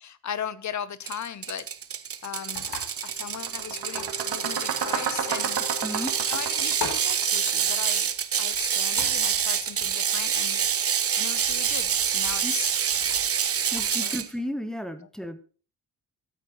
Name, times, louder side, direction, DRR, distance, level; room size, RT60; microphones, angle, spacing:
voice 1, 0.0-1.7 2.2-2.7 3.0-5.6 6.3-8.1 8.4-10.6 10.9-12.7 13.9-14.2, left 8 dB, 45° left, 15 dB, 0.7 m, -37 dB
Ratchet pawl, 1.1-14.3, right 8 dB, 35° right, 0.5 m, -27 dB
sound 1, 1.4-13.9, left 4 dB, 85° left, 3.3 m, -44 dB
sound 2, 2.4-2.6 2.9-7.9, right 6 dB, 85° right, 2.0 m, -32 dB
voice 2, 5.8-6.1 12.4-12.5 13.7-15.4, equal, ahead, 9 dB, 0.8 m, -33 dB
13.5 x 8.4 x 2.9 m, 0.38 s
wide cardioid pair, 165°, 39 cm